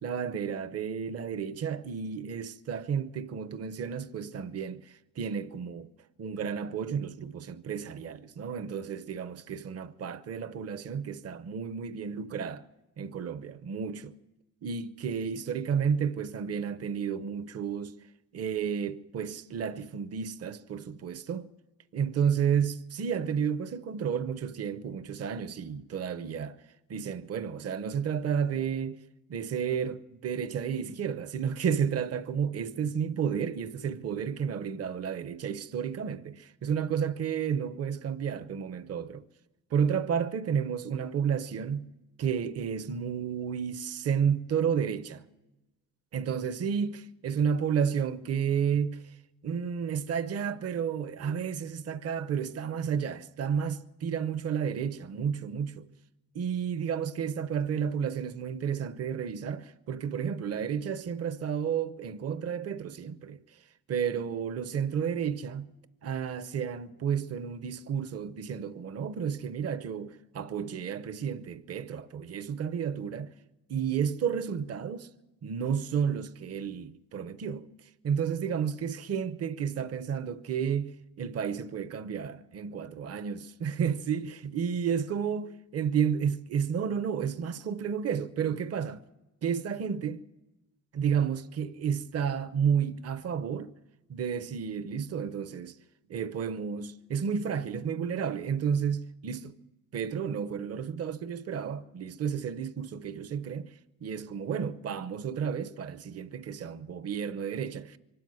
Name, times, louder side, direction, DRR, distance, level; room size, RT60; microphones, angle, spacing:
voice 1, 0.0-4.8 5.2-5.9 6.2-12.6 13.0-14.1 14.6-18.0 18.3-21.5 21.9-26.6 26.9-29.0 29.3-39.3 39.7-41.9 42.2-45.2 46.1-49.0 49.4-55.9 56.3-63.4 63.9-65.7 66.0-73.3 73.7-75.1 75.4-77.7 78.0-89.0 89.4-90.2 90.9-93.7 94.1-95.7 96.1-99.6 99.9-103.7 104.0-108.0, right 7 dB, 45° right, 0.8 m, -31 dB
24.5 x 12.5 x 9.5 m
wide cardioid pair, 170°, 34 cm